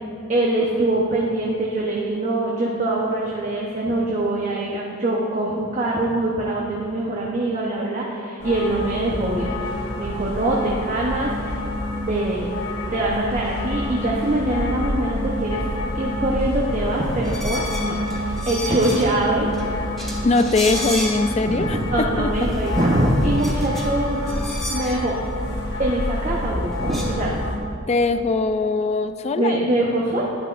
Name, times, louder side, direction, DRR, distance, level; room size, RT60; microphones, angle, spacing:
voice 1, 0.3-9.5 10.0-11.6 12.1-12.5 12.9-15.6 15.9-18.0 18.2-19.5 21.4-24.3 24.7-25.1 25.8-27.3 29.3-30.2, right 1 dB, 35° right, -3 dB, 0.9 m, -23 dB
sound 1, 8.4-27.6, left 1 dB, 55° left, 1.2 m, -28 dB
sound 2, 17.2-19.2 19.5-19.6 19.9-21.5 22.0-22.1 22.4-25.0 26.4-26.5 26.7-27.0, equal, ahead, 1.5 m, -33 dB
voice 2, 20.2-21.8 22.2-22.3 27.9-29.6, left 3 dB, 35° left, 9 dB, 0.4 m, -21 dB
11.0 x 9.5 x 2.5 m, 2.5 s
head